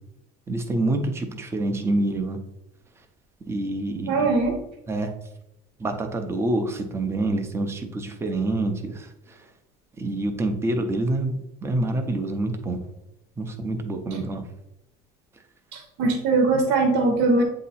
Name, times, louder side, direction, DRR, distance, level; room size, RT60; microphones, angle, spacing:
voice 1, 0.5-2.4 3.5-4.3 4.9-5.1 5.8-9.1 10.0-12.8 13.4-14.4, right 2 dB, 10° right, 6 dB, 0.5 m, -26 dB
voice 2, 4.1-4.6 15.7-17.4, right 3 dB, 70° right, 5 dB, 0.9 m, -21 dB
8.4 x 2.8 x 4.1 m, 0.86 s
cardioid pair, 180°, 21 cm